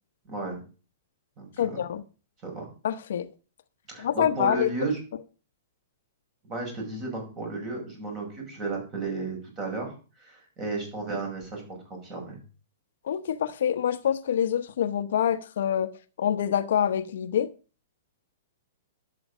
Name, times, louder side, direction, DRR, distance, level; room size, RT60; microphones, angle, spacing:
voice 1, 0.3-0.6 1.4-1.9 2.4-2.7 3.9-5.0 6.4-12.4, right 3 dB, 25° right, 5.7 m, -34 dB
voice 2, 1.6-2.0 2.8-3.3 4.0-4.7 13.0-15.9 16.2-17.5, left 9 dB, 65° left, 1.0 m, -26 dB
11.0 x 7.7 x 6.2 m
hypercardioid pair, 165°, 0 cm